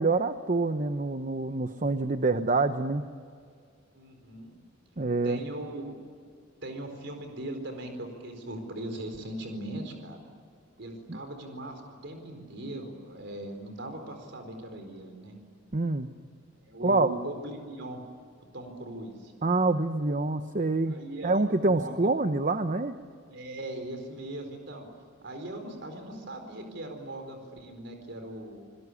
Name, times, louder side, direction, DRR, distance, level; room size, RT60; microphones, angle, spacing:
voice 1, 0.0-3.0 5.0-5.4 11.1-11.2 15.7-16.1 16.8-17.1 19.4-21.0 21.2-23.0, right 3 dB, 40° right, 9 dB, 0.9 m, -26 dB
voice 2, 3.9-4.6 5.2-6.0 6.6-10.2 10.8-15.3 16.6-18.0 18.5-19.3 20.9-21.3 21.6-22.1 23.3-24.8 25.2-28.7, right 1 dB, 65° right, 5 dB, 4.5 m, -39 dB
27.5 x 21.5 x 9.9 m, 2.1 s
head